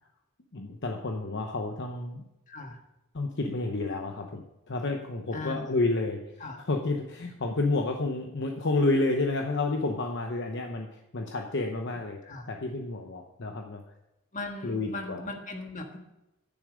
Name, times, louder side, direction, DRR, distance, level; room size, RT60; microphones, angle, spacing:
voice 1, 0.5-2.2 3.1-12.2 12.5-13.8 14.6-15.3, left 2 dB, 55° left, 3 dB, 0.8 m, -30 dB
voice 2, 2.5-2.8 5.3-5.8 6.4-6.6 12.2-12.5 14.3-16.0, left 2 dB, 35° left, 3 dB, 1.6 m, -38 dB
9.8 x 7.2 x 5.1 m, 0.92 s
head